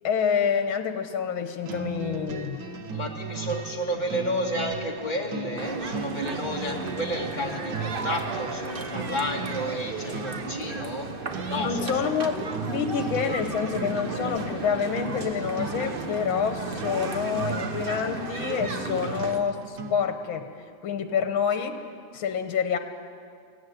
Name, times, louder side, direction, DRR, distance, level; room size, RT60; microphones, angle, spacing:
voice 1, 0.0-2.6 11.6-20.5 20.8-21.7 22.1-22.8, left 7 dB, 80° left, 8 dB, 1.8 m, -27 dB
sound 1, 1.6-20.2, right 5 dB, 60° right, 1.7 m, -37 dB
sound 2, 2.3-9.1, left 1 dB, ahead, 0.7 m, -46 dB
voice 2, 2.9-11.1 11.5-12.2 19.0-19.2 21.1-21.2, equal, 20° left, 0 dB, 2.1 m, -31 dB
sound 3, 5.6-19.4, right 3 dB, 35° right, 0.9 m, -34 dB
17.0 x 16.5 x 9.4 m, 2.3 s
omnidirectional pair, 2.2 m